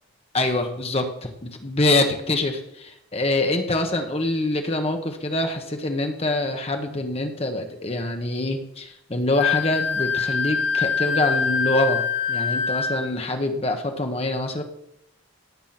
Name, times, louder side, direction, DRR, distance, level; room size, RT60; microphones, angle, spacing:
voice 1, 0.3-14.6, left 2 dB, 30° left, 4 dB, 1.3 m, -25 dB
Wind instrument woodwind instrument, 9.4-13.1, left 6 dB, 65° left, 1.9 m, -24 dB
18.0 x 8.4 x 6.0 m, 0.83 s
head